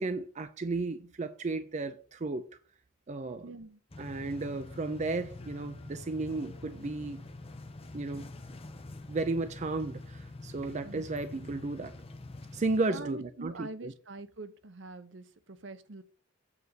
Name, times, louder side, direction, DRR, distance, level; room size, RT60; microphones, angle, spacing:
voice 1, 0.0-2.5 3.1-3.5 4.0-7.2 7.9-8.3 9.1-11.9 12.5-13.9, right 3 dB, 35° right, 0.5 m, -34 dB
voice 2, 3.4-3.8 10.8-11.1 12.9-16.0, right 3 dB, 65° right, 0.8 m, -44 dB
sound 1, 3.9-12.8, left 2 dB, 30° left, 0.8 m, -46 dB
8.3 x 4.1 x 6.7 m
head